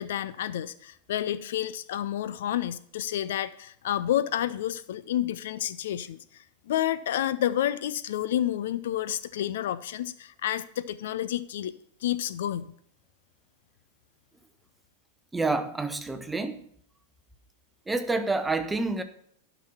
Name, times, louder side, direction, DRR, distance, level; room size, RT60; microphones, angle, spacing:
voice 1, 0.0-11.7 12.0-12.7, left 11 dB, 55° left, 0.4 m, -30 dB
voice 2, 15.3-16.7 17.9-19.0, right 3 dB, 10° right, 0.8 m, -28 dB
12.0 x 6.0 x 5.7 m
figure-of-eight pair, 90°, 0 cm